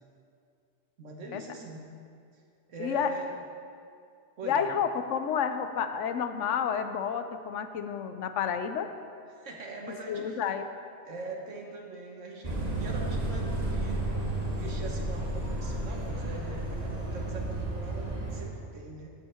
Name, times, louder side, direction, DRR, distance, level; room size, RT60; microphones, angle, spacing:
voice 1, 1.0-1.8 2.7-3.3 4.4-4.6 9.3-10.4 11.0-14.0 14.5-19.1, right 2 dB, 80° right, 1 dB, 1.6 m, -42 dB
voice 2, 2.8-3.1 4.4-8.9 10.1-10.7, left 7 dB, 75° left, 9 dB, 1.0 m, -30 dB
sound 1, 12.4-18.4, right 1 dB, 35° right, 1.2 m, -32 dB
15.0 x 5.5 x 4.4 m, 2.3 s
omnidirectional pair, 1.3 m